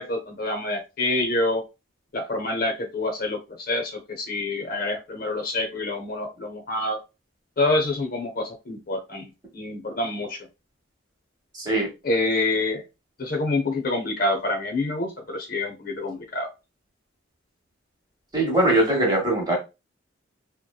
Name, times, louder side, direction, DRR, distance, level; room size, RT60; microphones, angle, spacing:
voice 1, 0.0-1.6 2.1-3.4 3.7-7.0 7.6-10.4 12.0-12.8 13.2-16.5, left 2 dB, 45° left, 0.6 m, -27 dB
voice 2, 11.5-11.9 18.3-19.6, right 1 dB, 20° right, 0.9 m, -21 dB
2.8 x 2.2 x 2.2 m
head